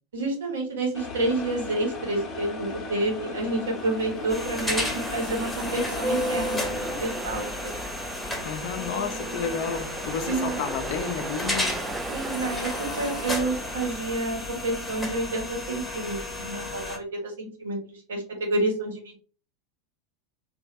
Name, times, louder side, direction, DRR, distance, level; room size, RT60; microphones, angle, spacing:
voice 1, 0.1-7.7 10.3-10.6 12.1-19.2, right 2 dB, 75° right, 1.3 m, -29 dB
sound 1, 0.9-7.0, left 3 dB, 35° left, 0.8 m, -37 dB
Ocean, 3.4-14.5, right 2 dB, 20° right, 0.3 m, -36 dB
sound 2, 4.3-17.0, left 2 dB, 10° left, 0.9 m, -33 dB
voice 2, 8.4-11.8, left 6 dB, 60° left, 0.6 m, -31 dB
3.0 x 2.7 x 2.5 m
hypercardioid pair, 90°, 0 cm